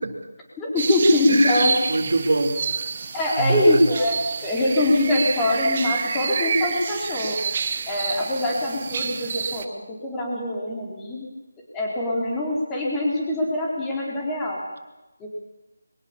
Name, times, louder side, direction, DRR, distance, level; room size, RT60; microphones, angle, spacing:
voice 1, 0.6-1.8 3.1-7.4 7.9-11.3 11.7-14.6 15.2-15.3, left 1 dB, 10° left, -3 dB, 4.5 m, -23 dB
sound 1, 0.8-9.6, right 5 dB, 35° right, 1.4 m, -29 dB
voice 2, 1.3-2.9 3.4-3.8, right 2 dB, 65° right, 5 dB, 3.6 m, -24 dB
22.5 x 19.5 x 7.3 m, 1.0 s
figure-of-eight pair, 170°, 0 cm